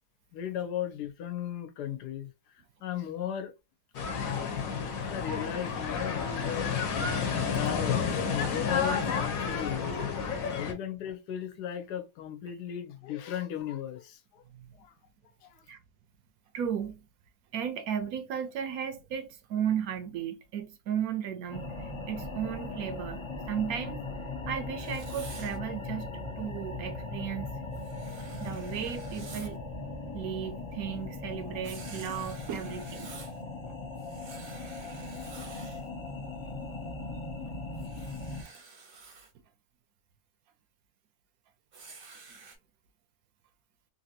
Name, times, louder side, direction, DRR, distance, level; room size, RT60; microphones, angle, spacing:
voice 1, 0.3-2.3 2.8-3.5 5.0-6.8 7.4-9.9 10.5-14.4 14.8-14.9 15.4-15.6, left 10 dB, 85° left, 1.2 m, -36 dB
sound 1, 3.9-10.7, left 6 dB, 65° left, 1.2 m, -30 dB
voice 2, 10.2-10.5 14.6-14.7 15.7-15.8 16.5-17.0 17.5-21.8 22.1-24.0 24.5-26.1 26.4-27.5 28.4-29.6 30.1-33.1, right 8 dB, 70° right, 1.0 m, -35 dB
sound 2, 21.5-38.4, left 2 dB, 40° left, 0.4 m, -39 dB
Writing, 24.8-25.6 27.7-29.6 31.6-33.4 34.0-35.9 37.7-39.3 41.7-42.6, right 4 dB, 50° right, 0.7 m, -49 dB
3.3 x 2.6 x 2.7 m
omnidirectional pair, 1.7 m